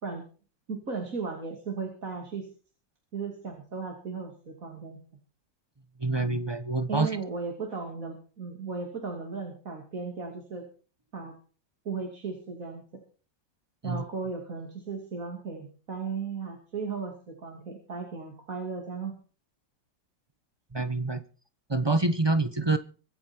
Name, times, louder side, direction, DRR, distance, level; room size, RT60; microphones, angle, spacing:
voice 1, 0.7-2.5 3.1-5.0 6.9-10.7 11.1-11.3 11.8-12.8 13.8-19.1, right 4 dB, 45° right, 1 dB, 3.1 m, -36 dB
voice 2, 6.0-7.1 13.8-14.0 20.7-21.2 21.7-22.8, right 3 dB, 25° right, 10 dB, 0.6 m, -26 dB
24.5 x 9.0 x 4.5 m, 0.39 s
omnidirectional pair, 2.0 m